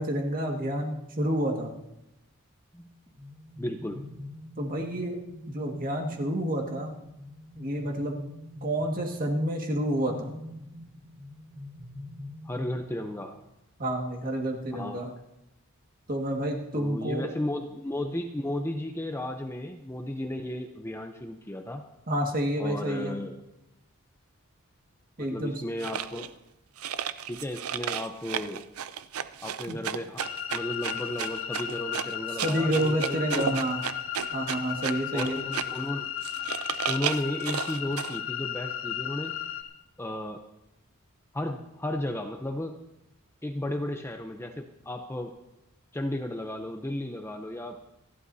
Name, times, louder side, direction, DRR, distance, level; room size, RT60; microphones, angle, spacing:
voice 1, 0.0-1.7 4.6-5.2 5.5-6.9 7.5-8.2 8.6-10.3 13.8-15.1 16.1-17.3 22.1-23.1 25.2-25.5 29.7-29.8 32.4-33.8 34.3-35.4, right 1 dB, 40° right, 1 dB, 1.8 m, -29 dB
sound 1, 3.1-13.5, left 1 dB, 20° right, 5.7 m, -44 dB
voice 2, 3.6-4.0 12.4-13.4 14.7-15.0 16.7-21.8 22.6-23.3 25.2-26.3 27.3-28.6 29.4-30.2 30.5-33.6 35.1-36.1 36.9-39.4 40.0-40.4 41.3-42.8 43.4-45.3 45.9-47.8, left 1 dB, 10° left, 4 dB, 0.6 m, -34 dB
sound 2, 25.8-26.3 26.8-35.8 36.2-38.2, right 8 dB, 80° right, 0.5 m, -34 dB
sound 3, 30.2-39.6, left 10 dB, 70° left, 1.3 m, -35 dB
28.0 x 11.5 x 2.7 m, 0.90 s
head